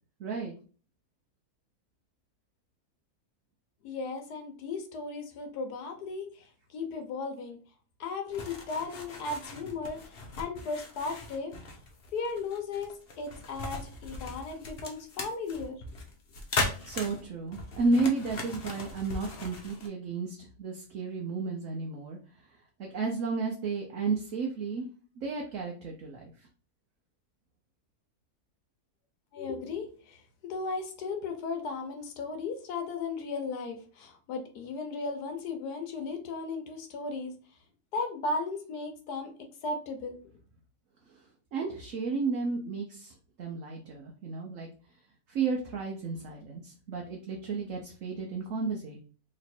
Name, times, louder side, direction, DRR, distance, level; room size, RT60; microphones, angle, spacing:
voice 1, 0.2-0.5 16.9-22.2 22.8-24.8 25.2-26.3 41.5-44.7 45.3-49.0, right 4 dB, 65° right, 0 dB, 1.0 m, -32 dB
voice 2, 3.8-7.6 8.0-11.5 12.1-15.8 29.3-37.3 37.9-39.3 39.6-40.2, left 4 dB, 85° left, 5 dB, 1.4 m, -36 dB
sound 1, 8.3-19.9, left 3 dB, 45° left, 0.9 m, -38 dB
3.2 x 3.1 x 4.2 m, 0.39 s
omnidirectional pair, 1.6 m